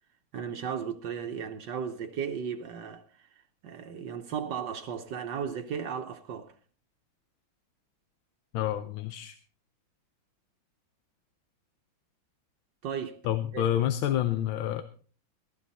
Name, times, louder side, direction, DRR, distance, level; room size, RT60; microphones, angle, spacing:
voice 1, 0.3-3.3 3.6-6.5 12.8-13.2 13.5-13.7, right 7 dB, 65° right, 1.5 m, -35 dB
voice 2, 8.5-9.4 13.2-14.8, left 11 dB, 90° left, 1.6 m, -28 dB
15.5 x 13.0 x 4.1 m
omnidirectional pair, 2.2 m